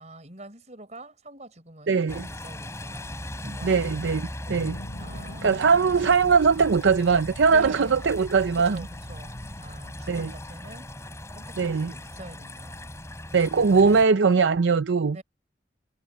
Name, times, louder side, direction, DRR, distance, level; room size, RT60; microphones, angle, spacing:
voice 1, 0.0-3.9 5.0-5.7 7.5-8.1 8.6-10.9 11.3-12.8 13.5-14.0 15.1-15.2, right 1 dB, 40° right, 5.2 m, -45 dB
voice 2, 1.9-2.2 3.4-4.8 5.4-8.8 10.1-10.3 11.6-11.9 13.3-15.2, right 5 dB, 85° right, 0.5 m, -21 dB
sound 1, 2.1-14.1, left 1 dB, 15° left, 3.6 m, -39 dB
sound 2, 4.5-9.8, equal, 75° left, 2.8 m, -43 dB
head